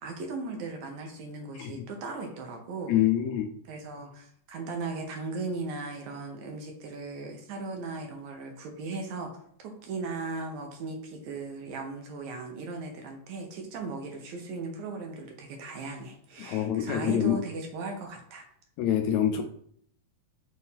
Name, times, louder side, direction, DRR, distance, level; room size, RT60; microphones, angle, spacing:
voice 1, 0.0-2.9 3.7-9.3 9.6-18.4, right 3 dB, 70° right, 2 dB, 2.2 m, -37 dB
voice 2, 2.9-3.5 16.4-17.4 18.8-19.4, left 10 dB, 80° left, 5 dB, 1.7 m, -26 dB
6.4 x 2.7 x 5.5 m, 0.64 s
omnidirectional pair, 3.6 m